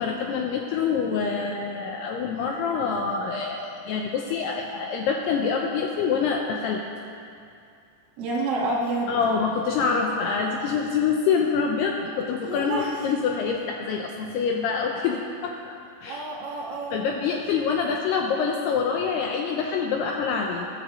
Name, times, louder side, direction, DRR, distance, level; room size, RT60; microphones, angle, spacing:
voice 1, 0.0-6.8 9.1-15.8 16.0-16.3 16.9-20.7, left 5 dB, 80° left, 1 dB, 2.4 m, -26 dB
voice 2, 8.2-9.1 12.4-12.9 16.1-17.0, right 2 dB, 65° right, -5 dB, 1.4 m, -28 dB
20.5 x 13.0 x 3.2 m, 2.4 s
omnidirectional pair, 5.5 m